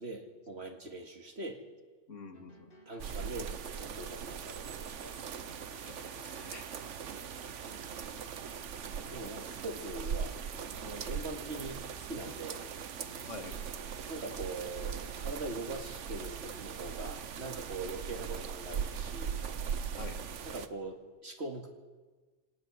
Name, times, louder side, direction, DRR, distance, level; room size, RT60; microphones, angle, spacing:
voice 1, 0.0-1.6 2.9-3.5 3.8-5.2 9.1-10.3 10.7-11.8 12.1-12.6 14.1-19.4 19.9-20.0 20.4-21.7, right 2 dB, 60° right, 2 dB, 2.5 m, -42 dB
voice 2, 2.1-2.7 5.8-6.8 7.3-7.4 13.3-13.6 20.0-20.2, left 4 dB, 85° left, 6 dB, 2.1 m, -47 dB
sound 1, 2.3-15.2, left 3 dB, 45° left, 1.8 m, -58 dB
sound 2, 3.0-20.7, right 7 dB, 80° right, 1.2 m, -40 dB
25.5 x 18.0 x 6.3 m, 1.4 s
omnidirectional pair, 1.2 m